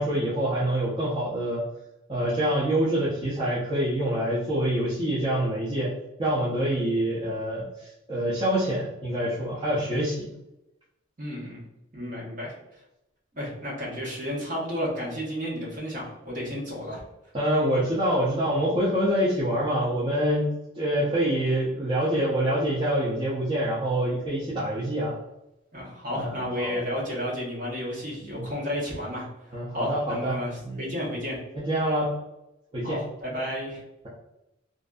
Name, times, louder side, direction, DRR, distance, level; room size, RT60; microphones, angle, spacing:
voice 1, 0.0-1.6 2.1-5.9 6.2-10.3 17.3-25.1 26.2-26.8 28.2-28.5 29.5-30.3 30.6-31.0 31.5-32.2 32.7-33.0, right 1 dB, 25° right, -8 dB, 0.5 m, -26 dB
voice 2, 11.2-11.6 11.9-12.5 13.4-17.0 25.7-31.4 32.8-33.8, equal, 40° right, -5 dB, 1.0 m, -32 dB
2.5 x 2.5 x 2.2 m, 0.91 s
head